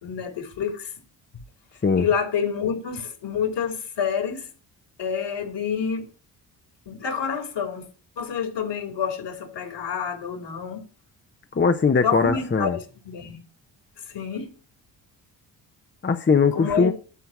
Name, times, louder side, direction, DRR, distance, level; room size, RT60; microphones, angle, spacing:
voice 1, 0.0-0.9 2.0-4.5 5.0-6.1 6.9-7.9 8.2-10.8 12.0-13.4 14.1-14.5 16.6-16.9, left 7 dB, 60° left, 3.1 m, -28 dB
voice 2, 11.5-12.8 16.0-16.9, left 5 dB, 25° left, 1.0 m, -20 dB
12.5 x 4.5 x 7.3 m
hypercardioid pair, 45°, 48 cm